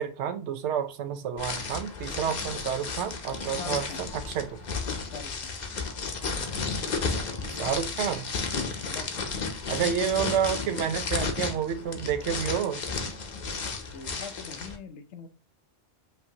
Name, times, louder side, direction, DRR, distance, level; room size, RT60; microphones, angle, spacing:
voice 1, 0.0-3.9 4.3-4.6 7.5-8.3 9.7-12.8, right 8 dB, 85° right, 0.9 m, -29 dB
sound 1, 1.4-14.7, left 4 dB, 50° left, 0.7 m, -33 dB
voice 2, 3.6-4.0 5.1-5.5 8.6-9.4 13.8-15.3, left 6 dB, 90° left, 0.9 m, -43 dB
5.0 x 2.7 x 2.7 m
omnidirectional pair, 1.1 m